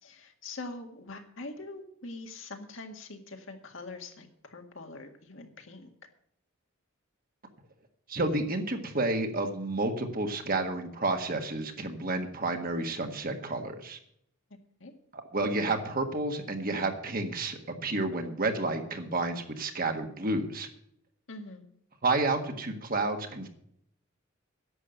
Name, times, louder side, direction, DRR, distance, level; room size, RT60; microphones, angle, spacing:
voice 1, 0.0-5.9 14.8-14.9 21.3-21.6, left 2 dB, 65° left, 4 dB, 2.0 m, -43 dB
voice 2, 8.1-14.0 15.1-20.7 22.0-23.5, right 2 dB, 45° right, 5 dB, 1.6 m, -30 dB
11.0 x 7.7 x 8.9 m, 0.71 s
head